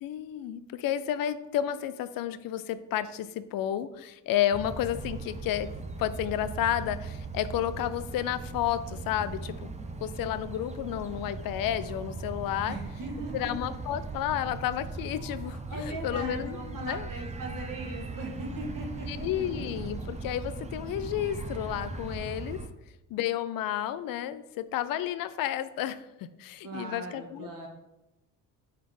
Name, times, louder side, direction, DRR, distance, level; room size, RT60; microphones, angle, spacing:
voice 1, 0.0-5.7 6.0-9.7 10.0-12.8 13.3-17.1 19.1-22.6 23.1-27.7, left 11 dB, 50° left, 14 dB, 0.5 m, -31 dB
sound 1, 4.5-22.7, right 3 dB, 15° right, 0.6 m, -39 dB
voice 2, 12.7-13.5 15.7-19.6 26.6-27.7, right 2 dB, 45° right, 1 dB, 1.8 m, -39 dB
5.5 x 3.9 x 4.9 m, 0.95 s
hypercardioid pair, 50°, 44 cm